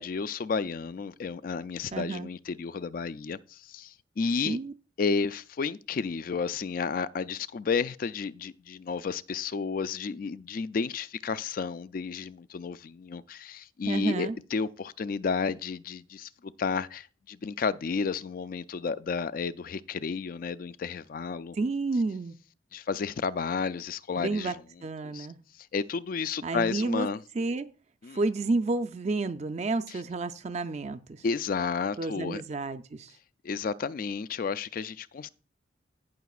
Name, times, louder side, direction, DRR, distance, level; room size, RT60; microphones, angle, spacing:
voice 1, 0.0-4.6 5.0-21.6 22.7-24.6 25.0-25.3 25.6-27.2 28.0-28.2 29.9-30.0 31.2-32.4 33.4-35.3, left 5 dB, 45° left, 0.3 m, -32 dB
voice 2, 1.9-2.3 4.5-4.7 13.9-14.4 21.6-22.4 24.1-25.4 26.4-27.1 27.4-27.7 28.1-31.2 32.0-33.1, right 3 dB, 35° right, 0.4 m, -30 dB
17.0 x 5.9 x 2.4 m
head